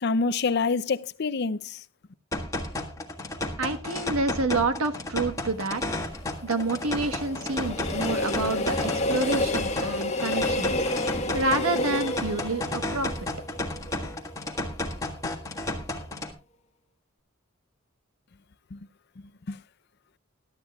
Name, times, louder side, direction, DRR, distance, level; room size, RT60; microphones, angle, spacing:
voice 1, 0.0-1.8 18.7-18.8 19.5-19.6, left 4 dB, 50° left, 0.6 m, -26 dB
sound 1, 2.3-16.3, left 1 dB, 15° left, 1.6 m, -33 dB
voice 2, 3.6-5.8 6.4-10.8 11.3-13.1, right 2 dB, 85° right, 1.4 m, -28 dB
Train, 5.5-14.6 14.9-15.0, left 1 dB, 30° left, 1.5 m, -30 dB
21.0 x 12.0 x 2.4 m
head